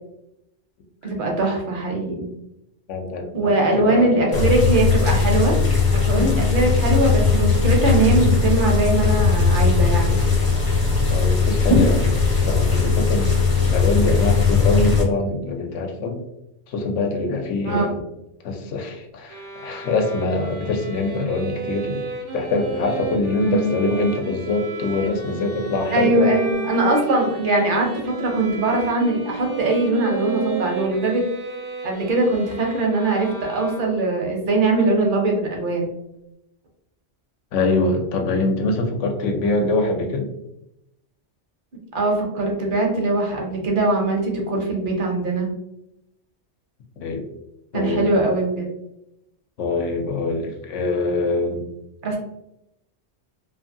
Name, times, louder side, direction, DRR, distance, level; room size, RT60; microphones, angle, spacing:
voice 1, 1.0-2.3 3.3-5.6 5.9-10.2 17.6-17.9 23.4-23.7 25.9-31.2 31.8-35.9 41.9-45.5 47.7-48.7 52.0-52.2, right 2 dB, 55° right, 0 dB, 0.7 m, -21 dB
voice 2, 2.9-4.4 5.7-5.8 6.1-6.8 9.0-9.1 10.7-10.8 11.1-12.1 12.4-13.3 13.6-16.3 16.7-18.0 18.4-22.0 22.3-26.3 26.7-26.9 37.5-40.3 47.0-47.3 47.7-48.2 49.6-51.7, left 2 dB, 90° left, 4 dB, 0.9 m, -24 dB
sound 1, 4.3-15.0, left 4 dB, 25° left, 0.5 m, -18 dB
sound 2, 19.3-34.2, right 5 dB, 80° right, 1.0 m, -34 dB
2.6 x 2.6 x 2.5 m, 0.85 s
omnidirectional pair, 1.2 m